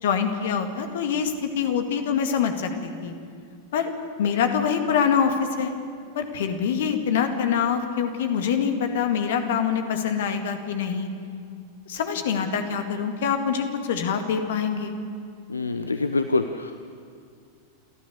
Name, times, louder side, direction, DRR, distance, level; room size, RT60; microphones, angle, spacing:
voice 1, 0.0-3.1 3.7-3.9 4.2-5.7 6.1-11.1 11.9-14.9, left 7 dB, 55° left, 6 dB, 1.9 m, -25 dB
voice 2, 15.5-16.8, left 3 dB, 75° left, 9 dB, 0.6 m, -25 dB
29.0 x 13.5 x 6.8 m, 2.2 s
figure-of-eight pair, 90°, 0 cm